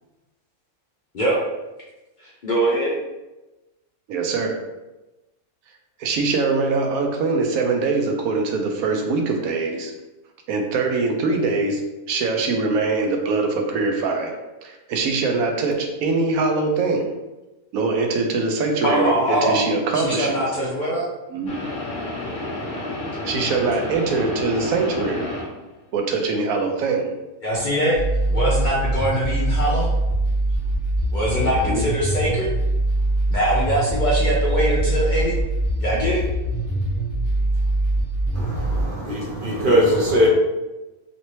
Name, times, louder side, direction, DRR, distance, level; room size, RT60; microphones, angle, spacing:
voice 1, 2.2-2.9 18.8-19.7 19.9-21.1 27.4-28.0 28.3-29.9 31.1-32.5 33.3-35.3 35.8-36.2, right 1 dB, 65° left, -5 dB, 0.4 m, -22 dB
voice 2, 4.1-4.6 6.0-9.9 10.5-11.8 12.1-17.1 17.7-20.4 21.3-21.5 23.3-25.3 25.9-27.1 31.4-31.8 39.4-39.8, right 3 dB, 75° right, 3 dB, 1.0 m, -23 dB
sound 1, 21.5-25.7, left 1 dB, 45° left, 0.9 m, -30 dB
sound 2, 27.9-38.8, right 1 dB, 15° left, 0.6 m, -23 dB
voice 3, 38.3-40.3, equal, 45° right, -3 dB, 0.8 m, -20 dB
3.2 x 2.7 x 3.0 m, 1.0 s
omnidirectional pair, 1.6 m